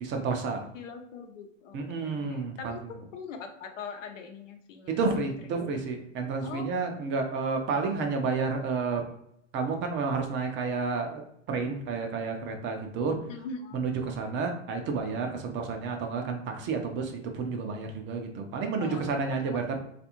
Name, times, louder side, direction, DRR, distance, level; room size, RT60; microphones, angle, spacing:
voice 1, 0.0-0.6 1.7-2.7 4.9-9.0 9.5-11.2 11.5-13.2 13.7-19.8, right 4 dB, 30° right, 3 dB, 0.6 m, -30 dB
voice 2, 0.7-2.8 3.1-5.3 6.4-7.1 13.3-13.9 18.8-19.6, left 5 dB, 75° left, 5 dB, 0.8 m, -42 dB
3.2 x 2.5 x 2.9 m, 0.74 s
hypercardioid pair, 115°, 38 cm